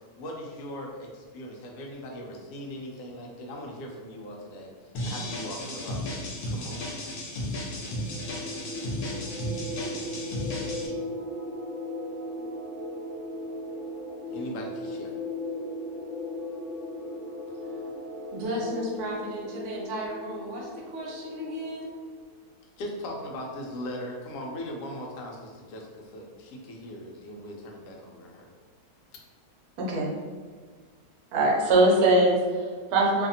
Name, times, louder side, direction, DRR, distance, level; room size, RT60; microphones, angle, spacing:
voice 1, 0.1-6.2 6.5-6.8 14.3-15.2 22.8-28.5, left 1 dB, 70° left, -1 dB, 0.9 m, -39 dB
sound 1, 4.9-10.9, left 1 dB, 85° left, 1.2 m, -34 dB
sound 2, 7.8-22.1, left 1 dB, ahead, 1.2 m, -37 dB
voice 2, 17.5-17.8 18.3-21.9, equal, 60° right, -4 dB, 0.9 m, -34 dB
voice 3, 29.8-30.1 31.3-33.3, right 2 dB, 80° right, -2 dB, 1.1 m, -22 dB
2.7 x 2.5 x 2.6 m, 1.5 s
omnidirectional pair, 1.6 m